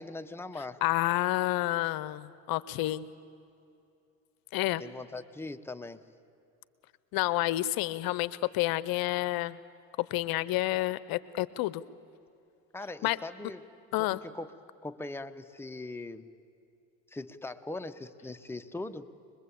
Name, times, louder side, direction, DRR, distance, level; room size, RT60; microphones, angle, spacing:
voice 1, 0.0-0.8 4.8-6.0 12.7-13.6 14.0-14.5 14.8-16.3 17.1-19.1, left 2 dB, 5° left, 8 dB, 1.0 m, -40 dB
voice 2, 0.8-3.0 4.5-4.8 7.1-9.6 10.0-11.8 13.0-13.2 13.9-14.2, left 17 dB, 65° left, 18 dB, 0.8 m, -29 dB
24.5 x 21.5 x 8.5 m, 2.6 s
supercardioid pair, 90°, 38 cm